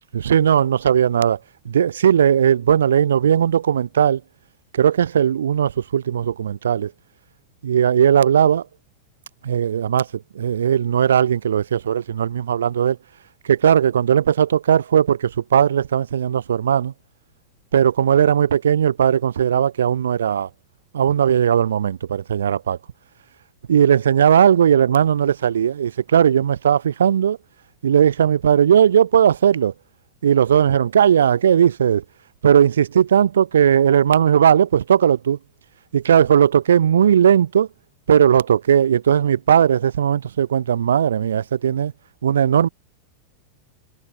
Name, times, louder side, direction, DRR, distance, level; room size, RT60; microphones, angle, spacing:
voice 1, 0.1-1.4 1.6-4.2 4.7-6.9 7.6-8.6 9.4-10.1 10.3-13.0 13.4-16.9 17.7-20.5 20.9-22.8 23.7-27.4 27.8-29.7 30.2-32.0 32.4-35.4 35.9-37.7 38.1-41.9 42.2-42.7, right 9 dB, 65° right, 0.9 m, -17 dB
figure-of-eight pair, 90°, 0 cm